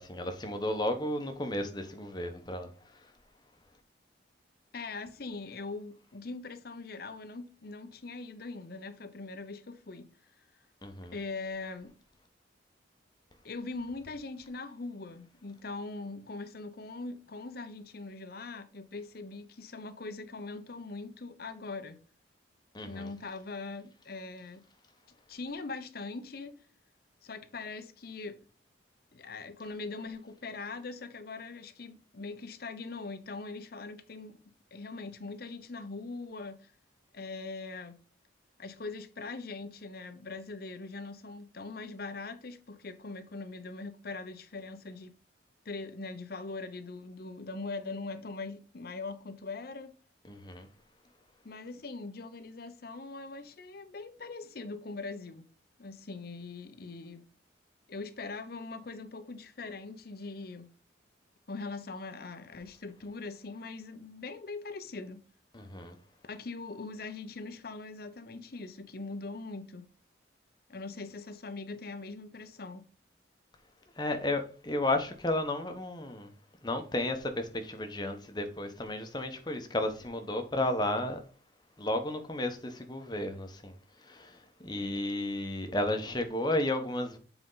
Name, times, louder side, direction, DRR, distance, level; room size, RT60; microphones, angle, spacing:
voice 1, 0.0-2.7 10.8-11.1 22.7-23.1 50.3-50.7 65.5-65.9 74.0-76.3 76.6-81.2 81.8-83.7 84.0-87.2, left 1 dB, 20° left, 0.9 m, -33 dB
voice 2, 4.7-10.1 11.1-12.0 13.4-22.0 22.9-24.6 25.3-26.5 27.2-28.4 29.1-34.4 34.7-36.7 37.1-38.0 38.6-45.1 45.6-49.9 51.4-55.5 55.8-57.3 57.9-60.7 61.5-65.2 66.2-69.9 70.7-72.9, left 3 dB, 50° left, 0.7 m, -41 dB
7.8 x 4.4 x 3.9 m
head